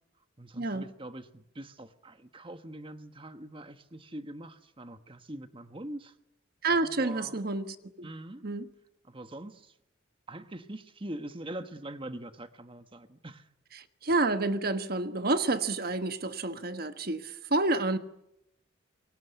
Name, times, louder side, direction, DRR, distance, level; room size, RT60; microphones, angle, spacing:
voice 1, 0.4-6.2 6.8-7.4 8.0-8.5 9.0-9.8 10.3-13.5, right 1 dB, 25° right, 1.3 m, -43 dB
voice 2, 6.6-8.1 8.4-8.7 14.0-18.0, right 2 dB, 50° right, 1.3 m, -29 dB
27.5 x 23.5 x 8.2 m
head